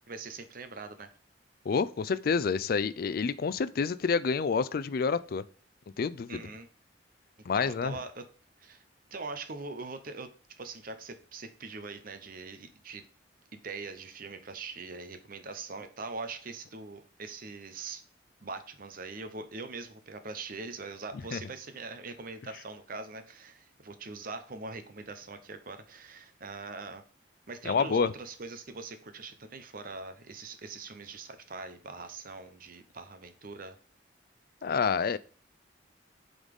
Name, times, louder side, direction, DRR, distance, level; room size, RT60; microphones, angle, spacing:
voice 1, 0.1-1.1 6.3-6.7 7.6-8.2 8.6-8.8 9.1-10.3 10.6-13.0 13.5-18.0 18.4-27.0 27.5-33.8, right 3 dB, 50° right, 0.8 m, -42 dB
voice 2, 1.7-5.4 6.0-6.3 7.5-7.9 21.3-21.4 27.7-28.1 34.6-35.2, left 5 dB, 55° left, 0.4 m, -28 dB
8.1 x 4.0 x 3.6 m
head